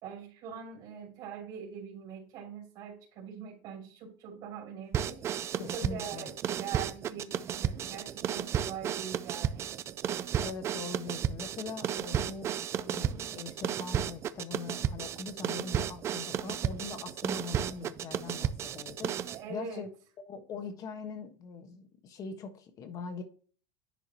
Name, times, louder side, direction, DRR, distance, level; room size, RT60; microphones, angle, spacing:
voice 1, 0.0-5.2 5.5-6.3 6.6-9.7 19.3-19.9, right 7 dB, 45° right, 3.0 m, -43 dB
sound 1, 4.9-19.4, right 9 dB, 25° right, 0.4 m, -33 dB
voice 2, 5.6-6.3 10.4-12.5 12.8-19.9 20.3-23.2, left 5 dB, 30° left, 1.3 m, -42 dB
10.5 x 5.0 x 2.9 m
supercardioid pair, 155°, 11 cm